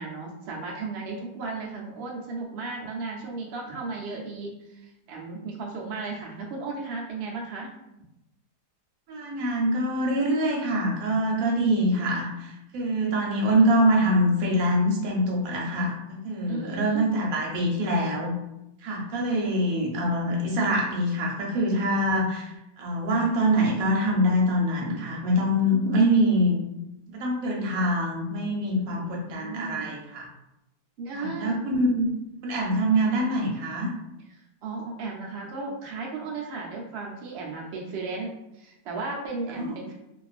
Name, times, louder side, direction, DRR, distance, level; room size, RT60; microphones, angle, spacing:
voice 1, 0.0-7.7 11.7-12.1 16.5-17.4 28.8-29.9 31.0-31.6 34.3-39.9, right 3 dB, 85° right, -1 dB, 0.5 m, -35 dB
voice 2, 9.1-18.3 18.8-22.5 22.8-26.6 27.1-30.3 31.1-32.1 32.4-33.9 39.6-39.7, equal, 65° right, -2 dB, 1.0 m, -24 dB
2.5 x 2.3 x 2.4 m, 0.87 s
omnidirectional pair, 1.8 m